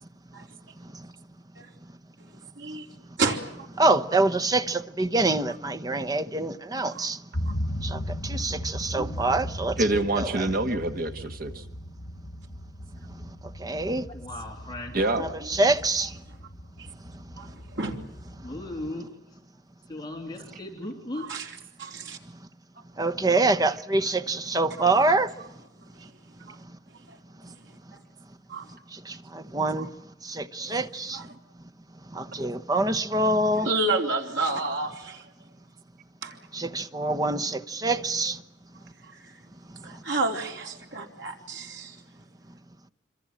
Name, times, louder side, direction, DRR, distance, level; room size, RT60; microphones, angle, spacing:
voice 1, 2.6-2.9 3.2-3.7 4.1-4.2 6.9-7.1 7.5-7.6 9.0-9.1 16.8-16.9 17.4-18.0 21.2-21.5 21.8-22.2 24.8-24.9 25.9-26.1 26.5-26.6 27.1-27.2 27.6-27.7 28.5-28.7 29.8-29.9 30.6-30.8 31.1-31.3 33.6-35.3 36.2-36.4 39.0-39.4 39.8-42.0, right 3 dB, 75° right, 4.1 m, -31 dB
voice 2, 3.8-7.2 7.8-9.8 10.2-10.5 13.6-14.0 15.1-16.1 23.0-25.3 29.1-29.9 30.2-31.2 32.1-33.7 36.5-38.4, right 2 dB, 20° right, 1.0 m, -25 dB
sound 1, 7.3-18.9, equal, 80° left, 2.0 m, -37 dB
voice 3, 9.8-11.6 14.9-15.2 32.4-32.5, right 2 dB, 55° right, 1.7 m, -26 dB
voice 4, 14.1-15.1 18.4-19.4 19.9-21.5, left 1 dB, 25° left, 3.3 m, -37 dB
26.0 x 26.0 x 7.6 m
head